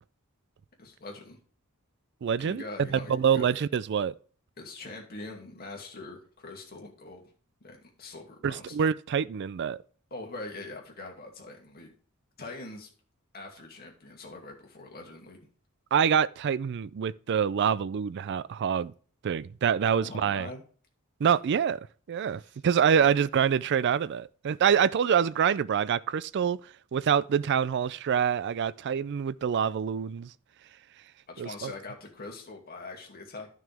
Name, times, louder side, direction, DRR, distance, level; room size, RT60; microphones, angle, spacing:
voice 1, 0.8-1.4 2.4-3.5 4.6-7.3 7.6-8.8 10.1-11.9 12.4-12.9 13.3-15.5 19.9-20.6 22.4-22.5 22.9-23.1 31.3-33.5, left 2 dB, 45° left, 2.3 m, -43 dB
voice 2, 2.2-2.6 2.9-4.1 8.4-9.8 15.9-18.9 19.2-20.5 21.2-30.3 31.4-31.7, right 7 dB, 50° right, 0.3 m, -26 dB
11.0 x 6.1 x 3.4 m
head